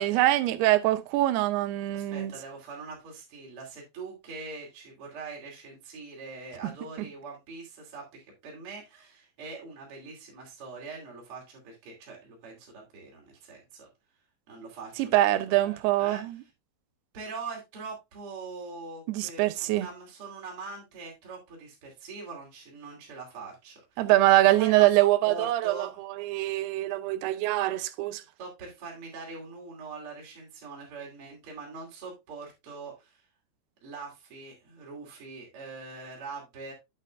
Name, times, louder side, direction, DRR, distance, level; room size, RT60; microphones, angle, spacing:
voice 1, 0.0-2.3 15.0-16.4 19.1-19.9 24.0-25.9 26.2-28.2, right 16 dB, 80° right, 2.6 m, -24 dB
voice 2, 1.9-13.9 14.5-16.2 17.1-24.1 24.6-24.9 25.2-25.9 28.4-33.2 33.8-36.7, right 4 dB, 40° right, 2.9 m, -43 dB
8.2 x 8.2 x 2.4 m
omnidirectional pair, 4.7 m